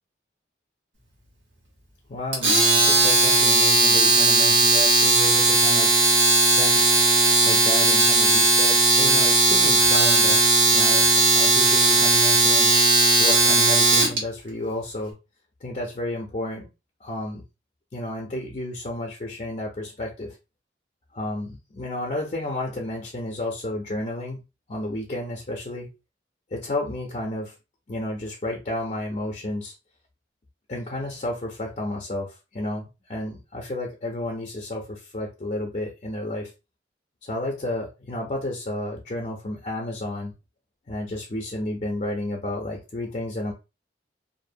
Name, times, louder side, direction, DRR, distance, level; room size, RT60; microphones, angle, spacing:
voice 1, 2.1-6.1 6.5-7.0 7.4-10.4 10.7-12.7 13.2-15.2 15.6-16.7 17.0-17.4 17.9-20.4 21.1-24.4 24.7-25.9 26.5-27.5 27.9-29.7 30.7-36.5 37.3-40.3 40.9-43.5, left 1 dB, 35° left, 0 dB, 0.5 m, -31 dB
Domestic sounds home sounds, 2.3-14.2, right 2 dB, 85° right, 1.2 m, -17 dB
2.6 x 2.1 x 2.6 m, 0.27 s
head